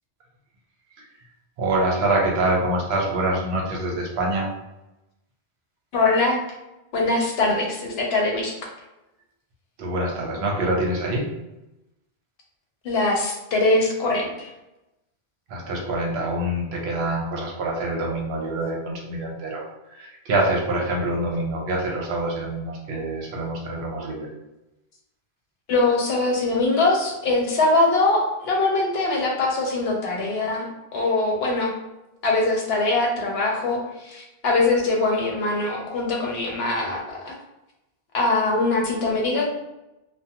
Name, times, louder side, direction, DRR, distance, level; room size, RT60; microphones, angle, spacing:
voice 1, 1.6-4.5 9.8-11.3 15.5-19.6 19.9-24.3, right 1 dB, 70° right, -1 dB, 0.9 m, -25 dB
voice 2, 5.9-6.4 6.9-8.5 12.8-14.5 25.7-31.7 32.2-37.3 38.1-39.5, left 2 dB, 70° left, 0 dB, 0.8 m, -22 dB
2.4 x 2.2 x 2.8 m, 0.95 s
omnidirectional pair, 1.1 m